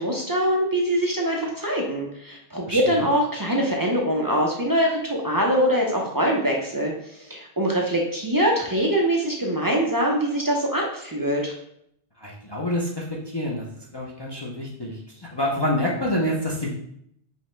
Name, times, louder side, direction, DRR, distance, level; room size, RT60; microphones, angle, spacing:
voice 1, 0.0-6.9 7.2-11.5, equal, 30° right, -1 dB, 0.4 m, -23 dB
voice 2, 2.7-3.1 12.2-13.0 13.3-13.7 13.9-16.7, left 1 dB, 35° left, -4 dB, 0.4 m, -27 dB
5.3 x 2.1 x 3.1 m, 0.73 s
omnidirectional pair, 1.1 m